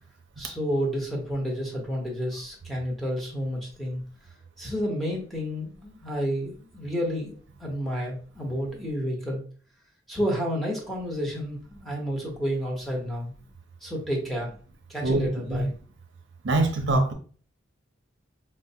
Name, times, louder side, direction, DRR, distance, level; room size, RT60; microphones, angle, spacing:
voice 1, 0.4-4.0 4.6-9.4 10.1-13.3 13.8-14.5 14.9-15.7, equal, ahead, -1 dB, 0.9 m, -30 dB
voice 2, 15.0-15.7 16.4-17.1, right 2 dB, 65° right, 3 dB, 0.6 m, -24 dB
4.4 x 2.1 x 2.7 m, 0.42 s
head